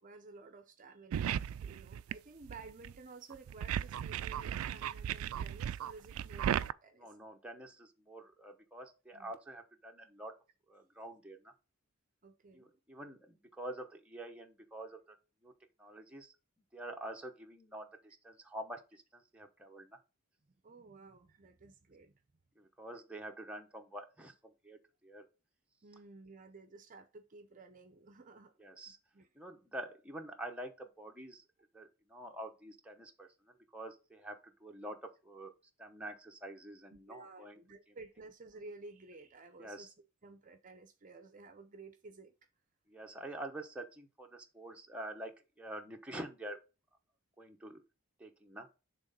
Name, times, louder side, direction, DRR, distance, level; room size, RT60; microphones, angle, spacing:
voice 1, 0.0-7.2 9.1-9.3 12.2-12.7 20.6-22.1 25.8-28.5 28.9-29.3 36.9-39.9 40.2-42.3, right 3 dB, 40° right, 0.6 m, -54 dB
sound 1, 1.1-2.1 2.5-2.9 3.3-6.7, right 9 dB, 85° right, 0.3 m, -36 dB
voice 2, 6.9-10.3 10.7-11.5 12.5-15.2 15.4-15.5 15.8-16.3 16.7-20.0 22.6-25.2 28.6-29.0 29.3-31.4 31.7-35.5 35.8-37.6 39.6-39.9 42.9-46.6 47.4-47.8 48.2-48.7, right 1 dB, 5° right, 0.9 m, -47 dB
6.1 x 3.6 x 5.4 m
head